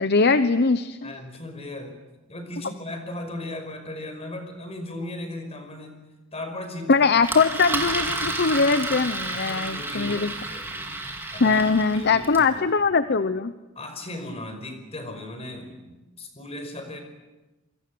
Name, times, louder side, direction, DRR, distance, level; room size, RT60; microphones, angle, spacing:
voice 1, 0.0-1.1 6.9-10.3 11.4-13.5, left 4 dB, 50° left, 12 dB, 0.8 m, -21 dB
voice 2, 1.0-2.0 2.3-6.0 6.3-7.1 9.3-10.9 11.3-12.9 13.8-17.0, left 1 dB, 30° left, 7 dB, 5.3 m, -37 dB
Engine, 7.2-12.5, right 2 dB, 10° right, 4.0 m, -31 dB
28.0 x 23.5 x 7.8 m, 1.1 s
head